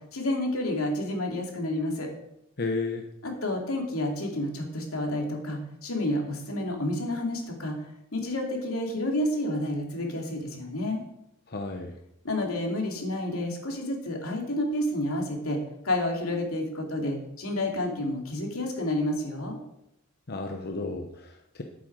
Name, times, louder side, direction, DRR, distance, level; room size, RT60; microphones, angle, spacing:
voice 1, 0.1-2.1 3.2-7.8 8.1-11.0 12.2-15.6 15.8-19.6, left 1 dB, 85° left, 1 dB, 2.8 m, -30 dB
voice 2, 2.6-3.1 11.5-11.9 20.3-21.6, left 3 dB, 50° left, 3 dB, 0.9 m, -33 dB
11.0 x 8.9 x 4.8 m, 0.82 s
head